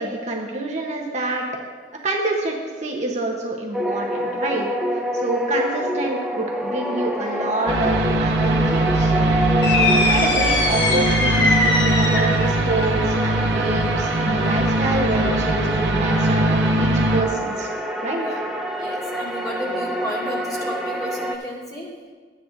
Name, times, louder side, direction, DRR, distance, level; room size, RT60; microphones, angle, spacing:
voice 1, 0.0-1.5 1.9-4.7 5.1-9.1 9.6-17.7 18.0-18.3, right 2 dB, 40° right, -1 dB, 1.0 m, -27 dB
sound 1, 3.7-21.4, equal, ahead, 0.6 m, -27 dB
sound 2, 7.7-17.2, right 1 dB, 75° right, 0.8 m, -21 dB
sound 3, 9.6-12.5, left 3 dB, 75° left, 1.3 m, -21 dB
voice 2, 18.8-21.9, equal, 20° left, -5 dB, 2.2 m, -32 dB
13.0 x 9.5 x 2.6 m, 1.5 s
head